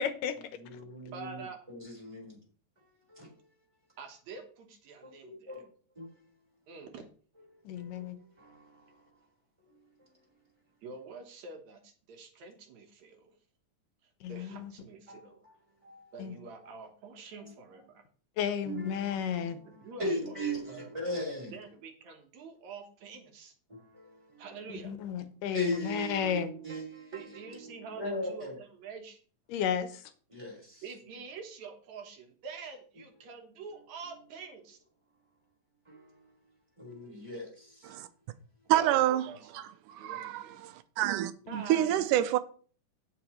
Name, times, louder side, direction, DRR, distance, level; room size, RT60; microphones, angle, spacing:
voice 1, 0.0-0.4 7.7-8.2 14.2-14.7 16.2-16.4 18.4-19.6 24.7-26.5 29.5-30.0 41.5-41.7, left 8 dB, 80° left, 2.6 m, -33 dB
voice 2, 0.6-2.4 3.1-3.5 5.0-5.7 5.9-6.2 7.5-9.1 9.7-10.1 15.1-15.5 15.8-16.1 16.6-16.7 17.3-17.5 18.6-21.5 23.7-24.5 25.5-28.6 30.3-30.8 35.8-38.0, equal, 10° right, 4.2 m, -39 dB
voice 3, 1.1-1.6 4.0-5.5 6.7-7.1 10.8-13.3 14.3-15.4 16.1-18.0 19.7-20.1 20.5-20.9 21.5-23.5 24.4-25.0 27.1-29.2 30.8-34.8 38.7-39.5 40.0-40.6 41.5-42.0, right 5 dB, 65° right, 2.4 m, -46 dB
voice 4, 38.7-39.3 39.5-42.4, right 13 dB, 85° right, 2.2 m, -28 dB
17.0 x 5.9 x 3.1 m
omnidirectional pair, 3.7 m